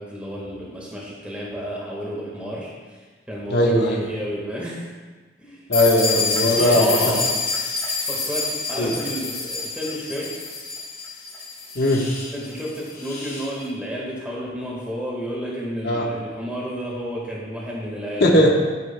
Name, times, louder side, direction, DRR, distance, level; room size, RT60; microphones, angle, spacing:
voice 1, 0.0-4.9 5.4-5.6 6.4-7.3 8.1-10.5 12.3-18.4, equal, 5° right, -5 dB, 1.6 m, -31 dB
voice 2, 3.5-4.0 5.7-7.2 8.8-8.9 11.7-12.0 15.8-16.0 18.2-18.5, left 1 dB, 60° left, -2 dB, 1.3 m, -18 dB
sound 1, 5.7-13.5, left 4 dB, 15° left, 2.5 m, -27 dB
12.5 x 9.2 x 2.2 m, 1.4 s
head